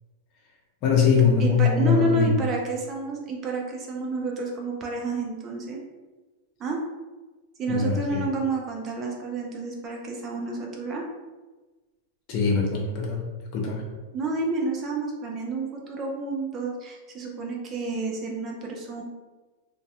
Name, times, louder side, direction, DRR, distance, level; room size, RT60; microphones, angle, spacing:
voice 1, 0.8-2.3 7.7-8.3 12.3-13.2 13.5-13.8, left 5 dB, 40° left, -1 dB, 0.6 m, -22 dB
voice 2, 1.4-5.8 6.6-6.8 7.6-11.0 14.1-19.0, right 2 dB, 25° right, 0 dB, 0.3 m, -29 dB
2.2 x 2.2 x 2.7 m, 1.2 s
supercardioid pair, 155°, 0 cm